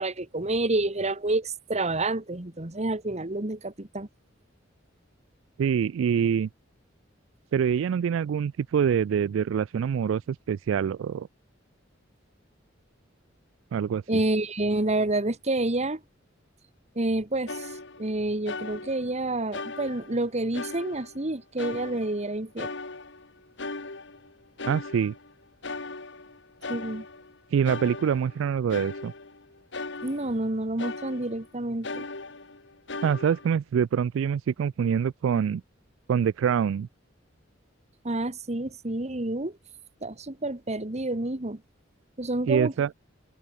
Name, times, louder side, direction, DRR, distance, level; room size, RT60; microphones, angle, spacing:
voice 1, 0.0-4.1 14.1-16.0 16.9-17.7 18.0-22.7 26.7-27.0 30.0-32.0 38.0-39.6 40.0-41.6 42.2-42.7, right 2 dB, 35° right, 1.7 m, -28 dB
voice 2, 5.6-6.5 7.5-11.3 13.7-14.2 24.7-25.1 27.5-29.1 33.0-35.6 36.1-36.9 42.5-42.9, right 7 dB, 75° right, 0.3 m, -25 dB
sound 1, 17.5-18.2 18.5-19.2 19.5-21.3 21.6-22.3 22.6-25.3 25.6-27.3 27.6-30.5 30.8-31.5 31.8-33.5, left 3 dB, 65° left, 2.6 m, -38 dB
head